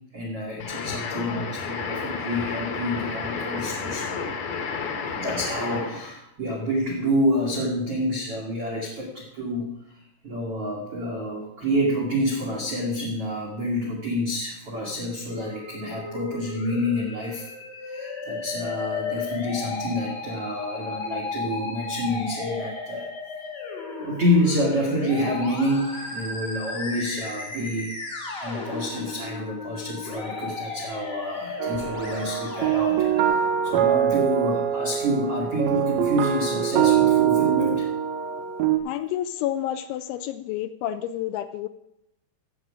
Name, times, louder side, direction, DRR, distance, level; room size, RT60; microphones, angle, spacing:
voice 1, 0.1-4.1 5.1-17.5 17.8-23.1 24.0-37.9, equal, 70° right, -2 dB, 1.4 m, -28 dB
sound 1, 0.6-6.1, left 5 dB, 65° left, 2.5 m, -31 dB
Musical instrument, 15.3-33.3, left 4 dB, 50° left, 1.2 m, -34 dB
sound 2, 31.6-38.8, right 9 dB, 90° right, 2.1 m, -23 dB
voice 2, 38.9-41.7, left 12 dB, 85° left, 10 dB, 2.7 m, -29 dB
15.5 x 7.4 x 4.9 m, 0.82 s
omnidirectional pair, 5.6 m